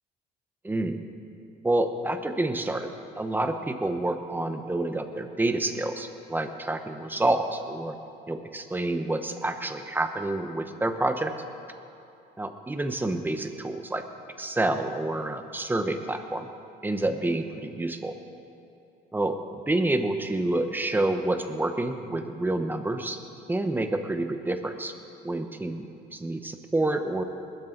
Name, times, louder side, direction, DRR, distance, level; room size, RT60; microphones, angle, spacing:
voice 1, 0.6-1.0 1.6-8.0 8.3-11.3 12.4-14.0 14.4-16.5 16.8-18.2 19.1-19.4 19.7-23.2 23.5-24.9 25.2-25.9 26.1-27.2, right 2 dB, 10° right, 7 dB, 1.0 m, -28 dB
21.0 x 12.5 x 4.0 m, 2.7 s
cardioid pair, 110°, 17 cm